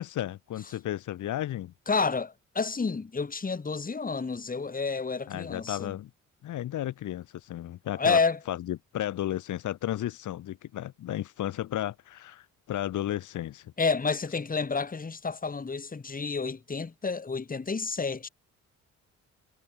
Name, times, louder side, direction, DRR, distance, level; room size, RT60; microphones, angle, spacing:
voice 1, 0.0-1.7 5.3-6.1 6.4-8.2 8.5-13.7, left 13 dB, 80° left, 5.6 m, -33 dB
voice 2, 1.9-5.9 8.0-8.4 13.8-18.3, left 4 dB, 30° left, 4.2 m, -29 dB
cardioid pair, 90°, 30 cm